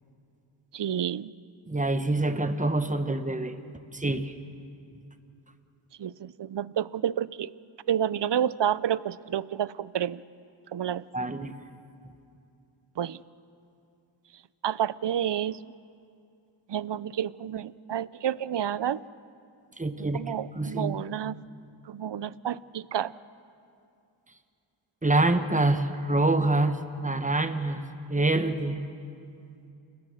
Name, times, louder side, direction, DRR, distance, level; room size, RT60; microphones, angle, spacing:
voice 1, 0.7-1.3 6.0-7.5 7.9-10.2 10.7-11.0 13.0-13.2 14.6-15.6 16.7-19.0 20.1-21.4 21.9-23.1, right 10 dB, 60° right, 19 dB, 0.5 m, -29 dB
voice 2, 1.7-3.5 3.9-4.3 11.1-11.5 19.8-20.2 20.5-21.0 25.0-27.8 28.1-28.8, right 2 dB, 15° right, 9 dB, 1.1 m, -26 dB
29.0 x 16.5 x 6.4 m, 2.6 s
wide cardioid pair, 65°, 49 cm